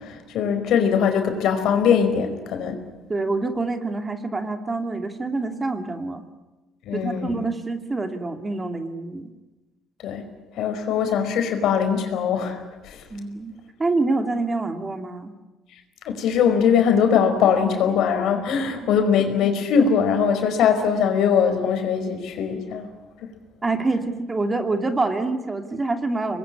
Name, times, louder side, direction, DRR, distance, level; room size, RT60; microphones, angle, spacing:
voice 1, 0.0-2.8 6.8-7.3 10.0-10.2 10.6-12.6 12.8-13.0 16.0-22.8, left 7 dB, 70° left, 6 dB, 5.0 m, -21 dB
voice 2, 3.1-6.2 6.9-9.3 13.1-13.5 13.8-15.3 18.8-19.0 23.6-26.4, right 3 dB, 20° right, 6 dB, 2.6 m, -26 dB
26.0 x 21.0 x 9.9 m, 1.1 s
cardioid pair, 105°, 0 cm